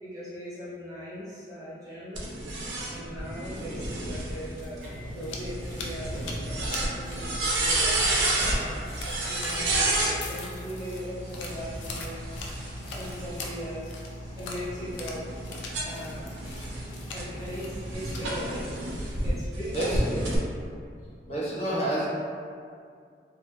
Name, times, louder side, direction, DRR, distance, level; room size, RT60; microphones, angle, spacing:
voice 1, 0.0-2.3 2.9-8.0 8.5-8.9 9.3-12.3 12.9-13.9 14.4-15.3 15.8-16.3 17.1-18.8 19.2-20.4, equal, 20° right, -10 dB, 0.5 m, -39 dB
sound 1, 2.2-10.2 11.3-13.7 14.2-19.3 19.7-20.4, right 2 dB, 90° right, 0.5 m, -31 dB
Microwave oven, 3.2-18.3, equal, 45° right, 1.0 m, -42 dB
sound 2, 4.3-19.5, left 3 dB, 90° left, 0.4 m, -44 dB
voice 2, 19.7-20.3 21.3-22.1, right 1 dB, 35° left, -9 dB, 0.6 m, -29 dB
2.1 x 2.1 x 3.0 m, 2.3 s
head